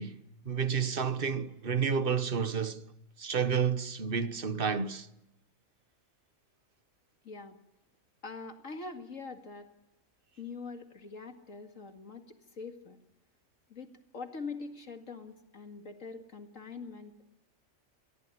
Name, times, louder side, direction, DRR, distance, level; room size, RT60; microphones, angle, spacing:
voice 1, 0.0-2.8 3.2-5.1, right 6 dB, 45° right, 1.3 m, -30 dB
voice 2, 7.2-7.6 8.2-9.7 10.4-13.0 13.7-17.1, left 4 dB, 70° left, 2.5 m, -43 dB
28.0 x 21.5 x 9.7 m
omnidirectional pair, 1.4 m